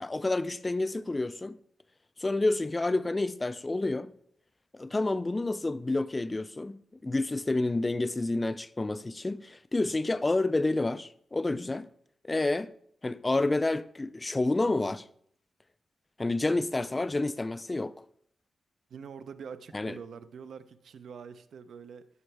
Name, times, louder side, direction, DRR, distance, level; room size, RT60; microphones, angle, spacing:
voice 1, 0.0-1.6 2.2-4.1 4.7-11.9 12.3-12.7 13.0-15.0 16.2-17.9 19.7-20.0, left 2 dB, 20° left, 0.3 m, -29 dB
voice 2, 18.9-22.1, right 6 dB, 65° right, 0.5 m, -45 dB
15.0 x 5.5 x 3.3 m
wide cardioid pair, 135°, 0 cm